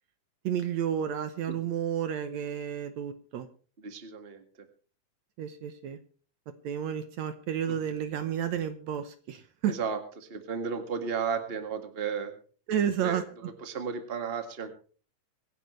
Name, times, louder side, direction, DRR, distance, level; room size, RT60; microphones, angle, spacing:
voice 1, 0.4-3.5 5.4-6.0 6.6-9.8 12.7-13.2, right 9 dB, 70° right, 10 dB, 2.1 m, -31 dB
voice 2, 3.8-4.4 7.7-7.9 9.6-12.3 13.0-13.2 13.6-14.7, right 6 dB, 25° right, 7 dB, 1.6 m, -34 dB
25.5 x 11.0 x 3.2 m, 0.40 s
omnidirectional pair, 3.6 m